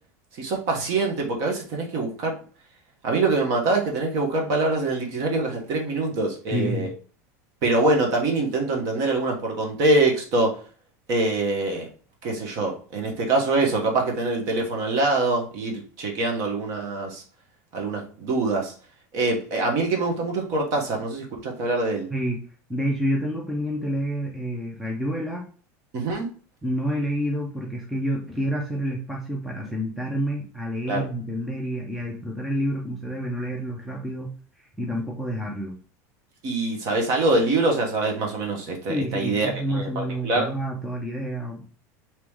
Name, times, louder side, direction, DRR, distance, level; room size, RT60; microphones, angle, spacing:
voice 1, 0.3-2.3 3.0-6.9 7.6-10.6 11.1-11.9 12.2-17.2 17.7-18.7 19.1-22.1 25.9-26.3 30.9-31.0 36.4-40.5, right 2 dB, 40° right, 1 dB, 1.1 m, -24 dB
voice 2, 6.5-6.9 22.1-22.4 22.7-25.4 26.6-34.3 34.6-35.7 38.9-41.6, equal, ahead, -2 dB, 0.4 m, -28 dB
4.6 x 3.0 x 3.6 m, 0.41 s
supercardioid pair, 180°, 9 cm